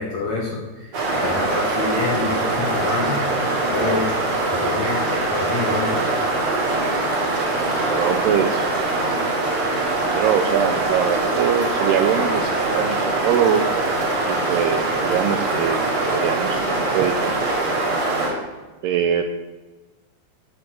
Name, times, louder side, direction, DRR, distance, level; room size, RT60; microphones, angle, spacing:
voice 1, 0.0-3.2 3.7-4.1 4.5-5.9, left 3 dB, 65° left, -2 dB, 1.7 m, -27 dB
sound 1, 0.9-18.3, right 2 dB, 45° right, 3.8 m, -22 dB
voice 2, 7.9-9.2 10.1-13.6 14.3-18.0 18.8-19.2, right 8 dB, 80° right, 7 dB, 2.4 m, -23 dB
9.0 x 8.8 x 7.5 m, 1.2 s
omnidirectional pair, 5.2 m